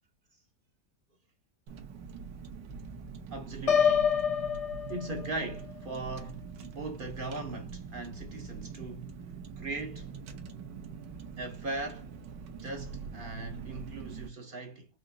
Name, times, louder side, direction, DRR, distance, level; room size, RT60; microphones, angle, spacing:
Car, 1.7-14.3, right 5 dB, 85° right, 1.4 m, -44 dB
voice 1, 3.3-4.2 4.9-9.1 9.6-10.1 11.4-12.1 12.6-14.9, right 2 dB, 55° right, 0.6 m, -39 dB
Piano, 3.7-5.6, left 7 dB, 60° left, 0.8 m, -27 dB
4.9 x 2.9 x 2.6 m
omnidirectional pair, 1.8 m